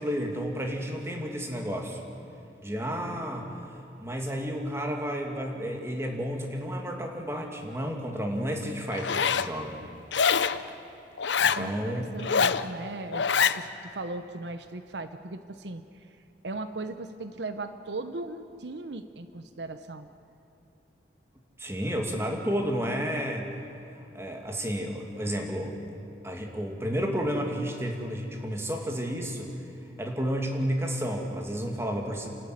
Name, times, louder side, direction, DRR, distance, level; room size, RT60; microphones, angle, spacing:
voice 1, 0.0-2.0 2.6-3.5 4.0-9.8 11.4-12.0 21.6-23.5 24.1-25.7 26.2-29.5 30.0-32.3, equal, 15° right, 1 dB, 2.4 m, -31 dB
Zipper (clothing), 8.9-9.5 10.1-10.6 11.2-11.6 12.2-12.6 13.1-13.6, left 6 dB, 85° left, 0.7 m, -24 dB
voice 2, 11.5-13.2 13.5-16.1 16.4-20.1, right 2 dB, 75° right, 9 dB, 0.9 m, -38 dB
29.0 x 12.5 x 9.5 m, 2.7 s
head